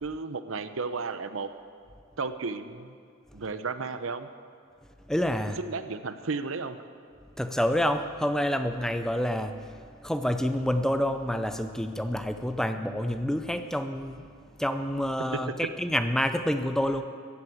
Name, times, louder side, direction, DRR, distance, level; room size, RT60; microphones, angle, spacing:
voice 1, 0.0-1.5 2.2-2.9 3.3-4.3 5.6-6.8, right 4 dB, 75° right, 11 dB, 0.7 m, -33 dB
voice 2, 5.1-5.6 7.4-9.5 10.0-14.3 14.6-17.0, equal, 5° left, 8 dB, 0.5 m, -28 dB
14.5 x 8.8 x 8.6 m, 2.2 s
head